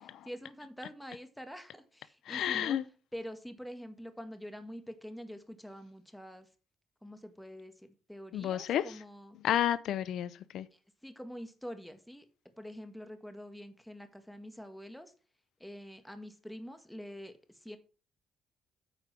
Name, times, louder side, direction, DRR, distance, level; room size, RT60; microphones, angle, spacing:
voice 1, 0.0-2.8 3.1-6.5 7.0-7.7 8.1-9.4 10.7-12.3 12.6-15.1 15.6-17.3 17.6-17.8, equal, 5° left, 1.6 m, -46 dB
voice 2, 2.3-2.8 8.3-9.0 9.4-10.7, left 11 dB, 80° left, 0.5 m, -31 dB
9.0 x 5.2 x 6.1 m
cardioid pair, 90°, 0 cm